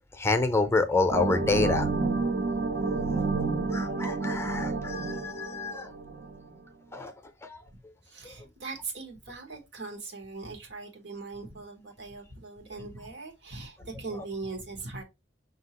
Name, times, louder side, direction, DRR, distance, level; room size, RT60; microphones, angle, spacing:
voice 1, 0.2-1.9 3.7-5.9 6.9-7.1 7.5-7.6, left 3 dB, 15° left, 0.5 m, -27 dB
sound 1, 1.1-6.5, right 3 dB, 65° right, 0.6 m, -29 dB
voice 2, 8.0-15.0, right 3 dB, 85° right, 1.3 m, -40 dB
5.7 x 2.8 x 2.9 m
head